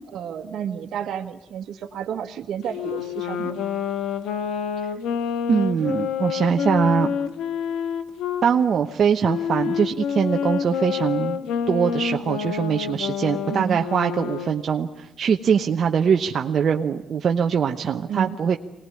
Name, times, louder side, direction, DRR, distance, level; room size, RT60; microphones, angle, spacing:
voice 1, 0.1-3.6 13.5-13.8 18.1-18.4, right 8 dB, 75° right, 4 dB, 1.6 m, -31 dB
Wind instrument woodwind instrument, 2.7-8.5 9.2-14.6, left 7 dB, 85° left, 1.5 m, -28 dB
voice 2, 5.5-7.2 8.4-11.4 11.7-18.6, right 7 dB, 55° right, 4 dB, 1.0 m, -22 dB
24.0 x 19.0 x 9.9 m, 0.94 s
cardioid pair, 90°, 0 cm